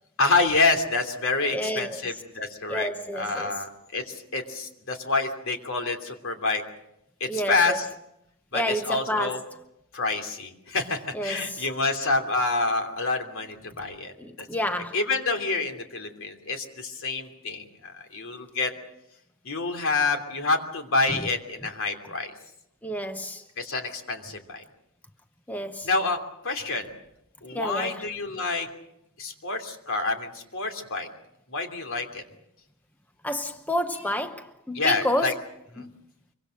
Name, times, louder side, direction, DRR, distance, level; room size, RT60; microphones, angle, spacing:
voice 1, 0.2-6.6 7.2-7.9 8.5-9.4 9.9-18.7 19.4-22.3 23.6-24.6 25.8-26.2 26.4-26.9 27.4-28.7 29.2-31.1 31.5-32.2 34.7-35.3 35.7-35.9, left 3 dB, 60° left, 3.0 m, -27 dB
voice 2, 1.5-2.0 2.7-3.5 7.3-7.8 8.5-9.4 11.1-11.6 14.2-15.0 21.1-21.2 22.8-23.4 25.5-25.9 27.5-28.0 33.2-35.4 35.8-35.9, equal, 5° left, 0.8 m, -30 dB
24.5 x 24.5 x 6.5 m
head